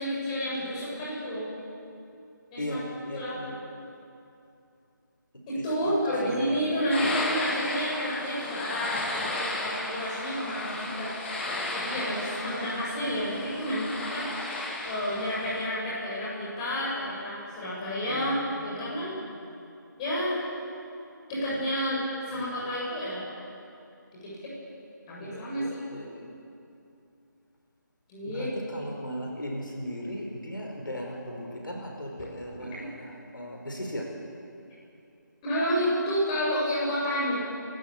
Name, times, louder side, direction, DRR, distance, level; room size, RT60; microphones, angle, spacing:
voice 1, 0.0-1.5 2.5-2.8 3.1-3.3 5.5-11.1 11.7-14.3 14.8-19.2 20.0-20.4 21.3-23.2 24.1-24.5 25.1-25.8 28.1-28.5 35.4-37.4, equal, 20° left, -7 dB, 7.9 m, -30 dB
voice 2, 2.6-3.6 5.8-5.9 6.3-6.6 13.1-13.2 18.1-19.1 22.4-22.7 25.2-26.3 28.3-34.1, equal, 80° left, 0 dB, 5.3 m, -38 dB
sound 1, 6.9-15.7, left 2 dB, 35° left, 3.8 m, -34 dB
28.0 x 14.0 x 8.8 m, 2.6 s
figure-of-eight pair, 155°, 11 cm